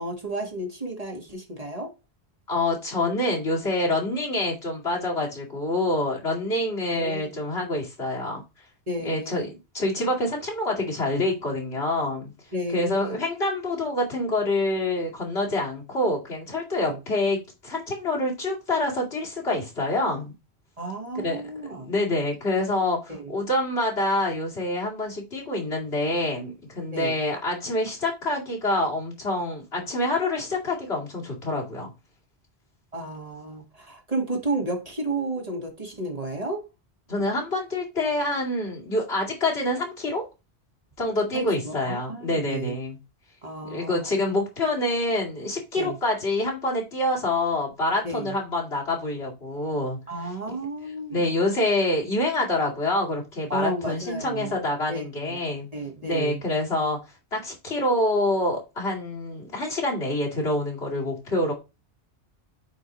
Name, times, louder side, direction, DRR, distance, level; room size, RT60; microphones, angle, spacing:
voice 1, 0.0-1.9 6.9-7.2 8.9-9.5 12.5-13.2 16.8-17.0 20.8-21.9 23.1-23.2 26.9-27.2 32.9-36.6 41.3-42.7 43.4-44.1 45.8-46.0 48.0-48.3 50.1-51.3 53.5-54.6 54.9-55.4 55.7-56.4, right 2 dB, 35° right, 1.6 m, -32 dB
voice 2, 2.5-8.4 9.0-9.5 9.7-12.3 12.7-20.3 21.2-21.4 21.7-31.9 37.1-40.2 41.0-43.0 43.6-50.6 51.1-55.7 56.0-57.0 57.3-61.5, left 1 dB, 70° left, 2.7 m, -26 dB
8.3 x 4.6 x 2.9 m
omnidirectional pair, 1.1 m